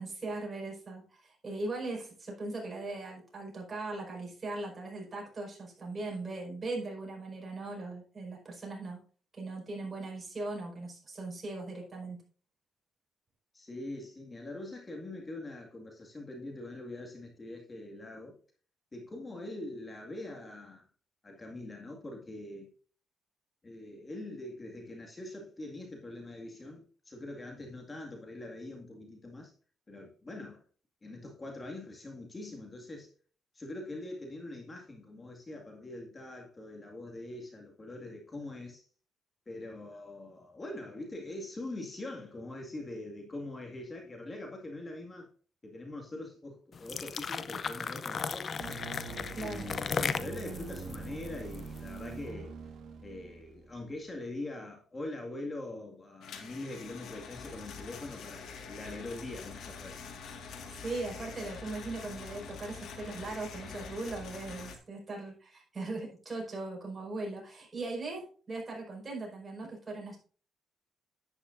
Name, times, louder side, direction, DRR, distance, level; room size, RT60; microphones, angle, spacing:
voice 1, 0.0-9.0 9.3-12.2 49.3-49.7 60.7-70.2, right 2 dB, 30° right, 5.1 m, -39 dB
voice 2, 13.5-18.4 18.9-20.9 21.2-22.7 23.6-29.5 29.9-30.6 31.0-33.1 33.5-38.9 39.5-45.3 45.6-48.8 49.4-52.6 53.0-60.0, left 2 dB, 25° left, 2.0 m, -43 dB
sound 1, 46.7-52.0, left 6 dB, 45° left, 0.6 m, -36 dB
sound 2, 48.6-53.9, right 4 dB, 70° right, 1.5 m, -44 dB
sound 3, 56.2-64.8, left 5 dB, 75° left, 1.8 m, -45 dB
10.5 x 9.8 x 2.6 m
cardioid pair, 90°, 0 cm